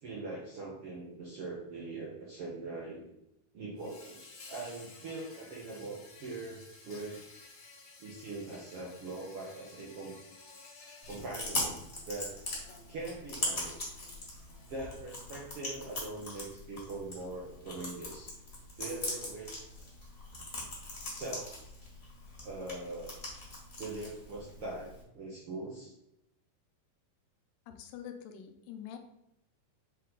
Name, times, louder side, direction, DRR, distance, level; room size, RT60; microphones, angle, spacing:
voice 1, 0.0-3.1 3.5-7.2 8.0-10.2 11.1-12.4 12.9-13.9 14.7-18.3 18.8-19.6 21.0-21.6 22.4-23.2 23.8-25.9, right 2 dB, 80° right, -4 dB, 1.3 m, -42 dB
Insect, 3.8-15.2, left 3 dB, 50° left, 1.9 m, -55 dB
Chewing mastication, 11.0-25.0, left 2 dB, 25° left, 1.5 m, -41 dB
voice 2, 27.7-29.0, left 9 dB, 75° left, 5 dB, 2.1 m, -45 dB
7.4 x 3.7 x 3.9 m, 0.83 s
omnidirectional pair, 4.2 m